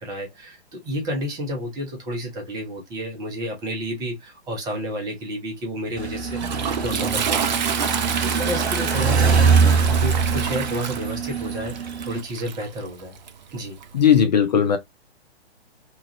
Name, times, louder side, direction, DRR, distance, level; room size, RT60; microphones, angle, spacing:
voice 1, 0.0-7.6 8.2-13.2 13.5-13.8, equal, 10° right, 0.7 m, -31 dB
Toilet flush, 5.8-14.2, right 7 dB, 45° right, 0.5 m, -29 dB
sound 1, 6.0-12.2, right 5 dB, 85° right, 0.6 m, -22 dB
voice 2, 13.9-14.8, left 8 dB, 45° left, 0.5 m, -17 dB
3.0 x 2.4 x 2.5 m
figure-of-eight pair, 120°, 32 cm